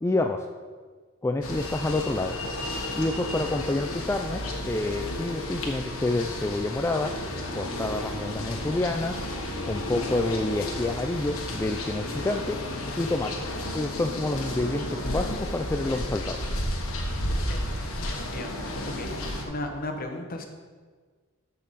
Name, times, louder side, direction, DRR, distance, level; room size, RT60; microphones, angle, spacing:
voice 1, 0.0-0.5 1.2-2.4 3.0-7.1 7.5-9.2 9.6-12.6 13.0-13.4 13.7-16.4, left 2 dB, 15° left, 4 dB, 0.3 m, -28 dB
sound 1, 1.4-19.4, left 1 dB, 80° left, 1.4 m, -32 dB
voice 2, 18.1-19.1 19.4-20.5, left 1 dB, 45° left, 4 dB, 1.1 m, -36 dB
13.5 x 5.8 x 4.1 m, 1.5 s
head